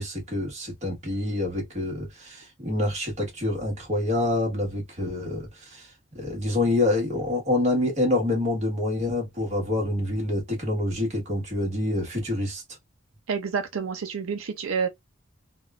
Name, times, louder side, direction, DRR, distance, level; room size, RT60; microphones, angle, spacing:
voice 1, 0.0-12.6, left 2 dB, 35° right, 1.4 m, -27 dB
voice 2, 13.3-14.9, right 6 dB, 90° right, 0.5 m, -28 dB
3.4 x 2.3 x 2.4 m
head